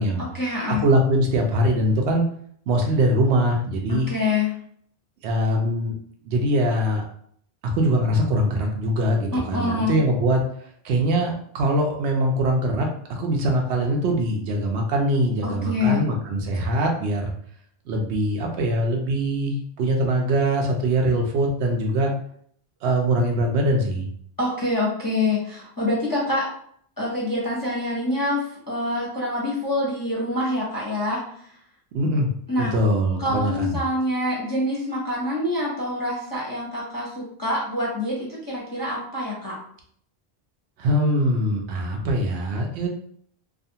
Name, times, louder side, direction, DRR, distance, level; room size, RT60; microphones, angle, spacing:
voice 1, 0.2-0.9 3.9-4.5 9.3-10.0 15.4-16.1 24.4-26.5 27.0-31.5 32.5-32.7 33.2-39.5, left 2 dB, 25° left, -5 dB, 0.6 m, -26 dB
voice 2, 0.8-2.2 2.7-4.1 5.2-5.9 6.3-7.0 7.6-17.3 17.9-22.1 22.8-24.1 31.9-32.3 32.7-33.8 40.8-42.9, right 1 dB, 90° right, 1 dB, 0.9 m, -22 dB
2.4 x 2.4 x 2.7 m, 0.63 s
omnidirectional pair, 1.1 m